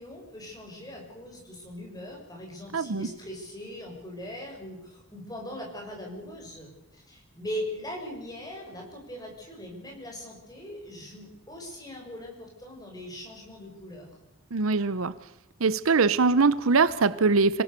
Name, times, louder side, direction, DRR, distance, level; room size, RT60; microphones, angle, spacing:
voice 1, 0.0-14.1, left 1 dB, 15° left, 0 dB, 6.1 m, -40 dB
voice 2, 2.7-3.1 14.5-15.1 15.6-17.6, right 4 dB, 75° right, 16 dB, 0.8 m, -22 dB
26.0 x 18.0 x 6.8 m, 0.96 s
head